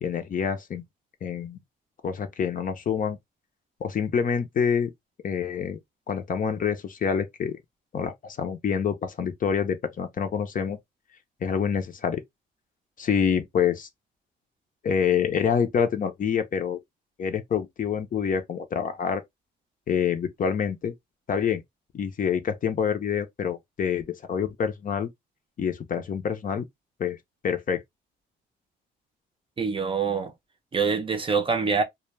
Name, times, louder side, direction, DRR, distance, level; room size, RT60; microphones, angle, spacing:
voice 1, 0.0-0.8 1.2-1.6 2.0-3.2 3.8-4.9 5.2-5.8 6.1-7.6 7.9-10.8 11.4-12.2 13.0-13.9 14.8-16.8 17.2-19.2 19.9-20.9 21.3-21.6 21.9-25.1 25.6-26.6 27.0-27.2 27.4-27.8, left 7 dB, 45° left, 0.5 m, -26 dB
voice 2, 29.6-30.3 30.7-31.8, right 5 dB, 25° right, 0.5 m, -25 dB
2.2 x 2.1 x 3.1 m
cardioid pair, 90°, 20 cm